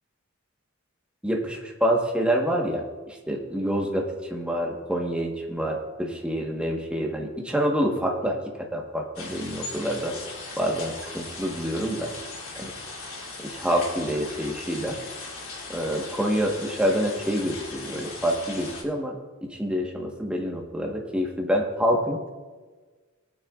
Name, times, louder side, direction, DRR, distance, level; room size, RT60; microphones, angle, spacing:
voice 1, 1.2-10.2 10.6-12.1 12.6-12.7 13.4-15.0 15.7-22.3, equal, 5° right, 0 dB, 1.2 m, -27 dB
sound 1, 9.2-18.8, left 3 dB, 90° left, 2.5 m, -39 dB
20.0 x 9.2 x 2.4 m, 1.4 s
head